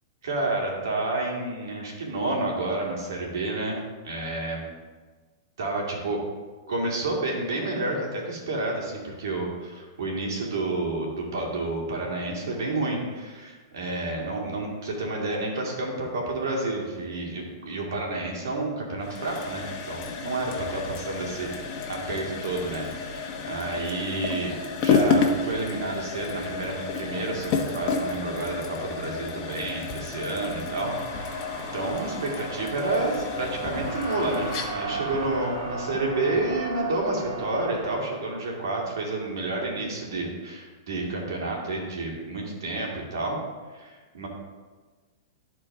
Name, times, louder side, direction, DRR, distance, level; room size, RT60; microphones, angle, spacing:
voice 1, 0.2-3.8 4.0-4.6 5.6-6.2 6.7-21.5 21.9-24.5 24.8-43.4 43.7-44.3, right 2 dB, 80° right, -1 dB, 2.4 m, -30 dB
sound 1, 19.0-36.7, left 4 dB, 40° left, 1.1 m, -31 dB
sound 2, 30.9-38.0, right 3 dB, 55° right, 2.6 m, -36 dB
12.5 x 4.5 x 3.7 m, 1.4 s
hypercardioid pair, 130°, 2 cm